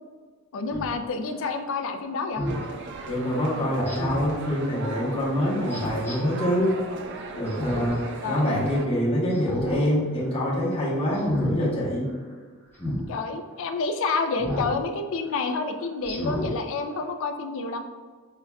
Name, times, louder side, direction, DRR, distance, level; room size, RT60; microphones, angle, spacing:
voice 1, 0.5-2.4 8.2-8.5 9.3-9.5 13.1-17.8, left 4 dB, 65° left, 7 dB, 0.3 m, -29 dB
Speech synthesizer, 0.7-0.9 2.4-2.6 3.9-4.3 5.7-6.2 7.5-8.0 8.4-8.5 9.3-9.8 10.2-10.5 11.1-11.5 12.8-13.0 14.4-14.7 15.2-15.3 16.0-16.5 17.0-17.1, left 1 dB, 10° left, 0.6 m, -31 dB
sound 1, 2.5-8.9, right 3 dB, 55° right, 0.3 m, -37 dB
voice 2, 3.0-6.8 7.3-8.0 8.3-12.1, equal, 25° left, -6 dB, 0.9 m, -25 dB
5.5 x 2.3 x 2.3 m, 1.5 s
head